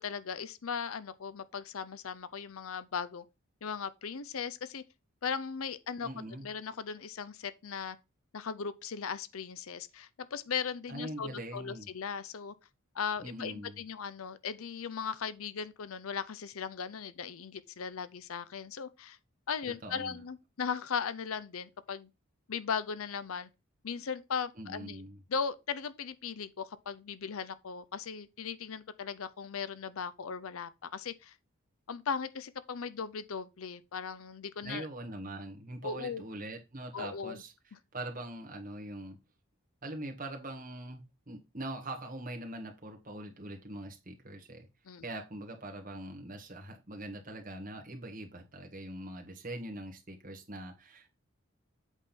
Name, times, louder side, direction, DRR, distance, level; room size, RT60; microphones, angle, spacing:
voice 1, 0.0-3.2 3.6-4.8 5.2-6.1 6.4-8.0 8.3-12.5 12.9-19.2 19.5-22.1 22.5-23.5 23.8-25.0 25.3-31.3 31.9-34.9 35.8-36.2 36.9-37.4 44.9-45.1, left 6 dB, 75° left, 0.6 m, -38 dB
voice 2, 6.0-6.5 10.9-11.9 13.2-13.8 19.8-20.2 24.6-25.2 34.6-37.5 37.9-39.2 39.8-44.7 45.0-51.1, right 1 dB, 40° right, 1.7 m, -42 dB
8.1 x 3.7 x 5.9 m
head